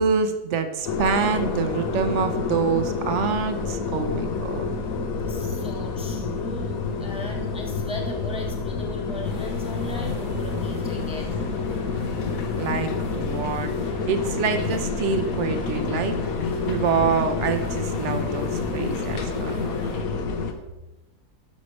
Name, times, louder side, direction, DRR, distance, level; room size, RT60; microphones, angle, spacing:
voice 1, 0.0-4.6 12.5-13.7 14.1-16.2 16.7-19.6, right 5 dB, 55° right, 8 dB, 1.0 m, -26 dB
sound 1, 0.8-20.5, left 4 dB, 65° left, 1.2 m, -28 dB
voice 2, 5.2-11.3, left 1 dB, 5° right, 0 dB, 1.0 m, -37 dB
sound 2, 9.2-20.0, left 1 dB, 30° left, 1.5 m, -39 dB
12.0 x 6.6 x 3.2 m, 1.0 s
omnidirectional pair, 1.7 m